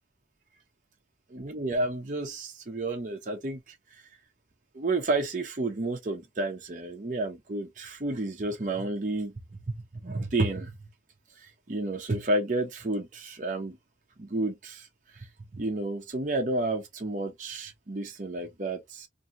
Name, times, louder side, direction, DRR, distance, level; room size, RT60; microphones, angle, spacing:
voice 1, 1.3-3.6 4.7-10.9 11.7-13.8 14.2-14.9 15.5-19.1, right 2 dB, 45° right, 0.7 m, -31 dB
2.8 x 2.7 x 2.4 m
head